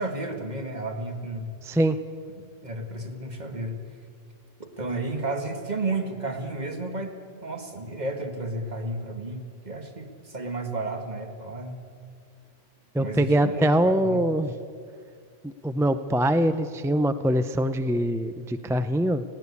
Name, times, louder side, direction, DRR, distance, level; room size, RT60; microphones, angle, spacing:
voice 1, 0.0-1.5 2.6-3.8 4.6-7.1 7.4-11.8 13.0-14.2, right 2 dB, 35° right, 4 dB, 1.9 m, -32 dB
voice 2, 1.6-2.0 12.9-14.5 15.4-19.2, right 1 dB, 5° right, 10 dB, 0.3 m, -23 dB
20.0 x 16.5 x 8.4 m, 2.2 s
omnidirectional pair, 1.3 m